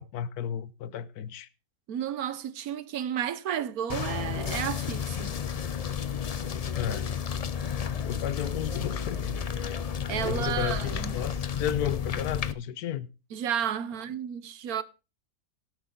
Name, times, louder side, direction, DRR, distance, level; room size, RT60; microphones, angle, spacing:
voice 1, 0.0-1.5 6.7-7.1 8.0-9.8 10.2-13.1, left 10 dB, 85° left, 1.3 m, -33 dB
voice 2, 1.9-5.4 10.1-11.2 13.3-14.8, right 9 dB, 80° right, 1.3 m, -32 dB
sound 1, 3.9-12.5, left 7 dB, 55° left, 0.4 m, -32 dB
17.5 x 8.2 x 3.7 m
omnidirectional pair, 1.6 m